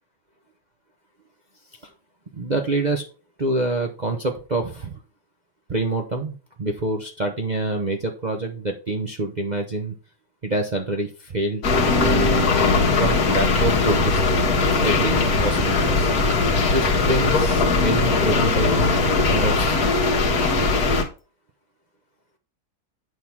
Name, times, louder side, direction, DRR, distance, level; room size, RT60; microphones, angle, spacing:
voice 1, 2.3-3.0 3.4-5.0 5.7-9.9 10.4-11.7 12.0-12.4 13.0-14.2 14.8-16.1 16.7-19.9, right 2 dB, 65° right, 1 dB, 0.4 m, -26 dB
sound 1, 11.6-19.6, left 6 dB, 70° left, 1.5 m, -29 dB
sound 2, 11.6-21.0, left 3 dB, 45° left, 1.8 m, -20 dB
9.2 x 3.7 x 5.9 m, 0.36 s
omnidirectional pair, 2.4 m